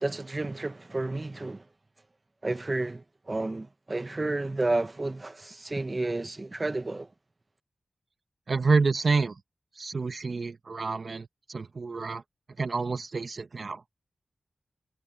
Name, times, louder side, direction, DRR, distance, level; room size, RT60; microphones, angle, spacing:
voice 1, 0.0-1.6 2.4-7.1, right 2 dB, 35° right, 0.9 m, -31 dB
voice 2, 8.5-9.4 9.7-12.2 12.6-13.8, right 4 dB, 60° right, 0.9 m, -28 dB
wide cardioid pair, 75°, 0 cm